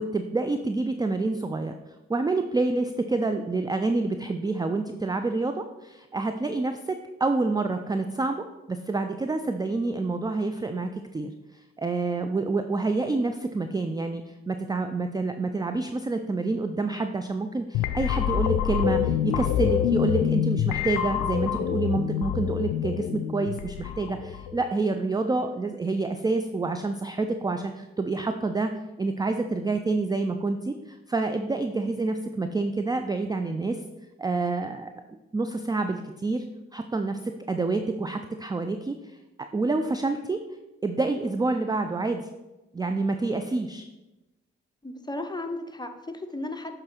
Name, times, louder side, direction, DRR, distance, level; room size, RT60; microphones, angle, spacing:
voice 1, 0.0-1.7 2.1-11.3 11.8-28.7 29.0-33.8 34.2-34.9 35.3-36.4 36.7-40.4 40.8-42.3 42.7-43.8, right 3 dB, 15° right, 7 dB, 0.4 m, -28 dB
sound 1, 17.7-24.6, left 11 dB, 70° left, 0.5 m, -26 dB
voice 2, 44.8-46.8, left 2 dB, 15° left, 6 dB, 0.9 m, -35 dB
7.5 x 3.7 x 4.4 m, 1.0 s
hypercardioid pair, 40°, 32 cm